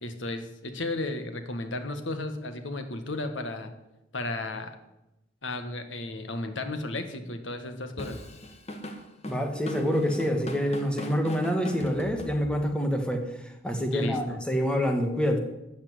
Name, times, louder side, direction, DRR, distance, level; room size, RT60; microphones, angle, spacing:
voice 1, 0.0-3.7 4.1-4.7 5.4-8.2 13.9-14.4, left 2 dB, 75° left, 7 dB, 1.8 m, -34 dB
Drum kit / Drum, 8.0-12.8, equal, 35° left, 1.7 m, -39 dB
voice 2, 9.3-15.4, equal, 5° left, 4 dB, 1.8 m, -27 dB
13.0 x 7.4 x 9.9 m, 0.94 s
head